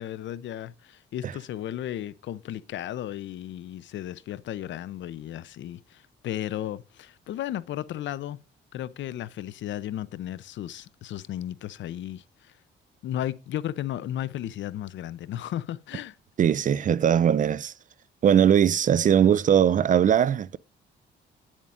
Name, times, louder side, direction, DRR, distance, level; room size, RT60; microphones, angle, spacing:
voice 1, 0.0-8.4 8.7-12.5 13.0-16.2, left 12 dB, 70° left, 0.6 m, -34 dB
voice 2, 16.4-17.7 18.2-20.6, right 9 dB, 40° right, 0.4 m, -20 dB
9.9 x 7.3 x 2.5 m
cardioid pair, 90°, 20 cm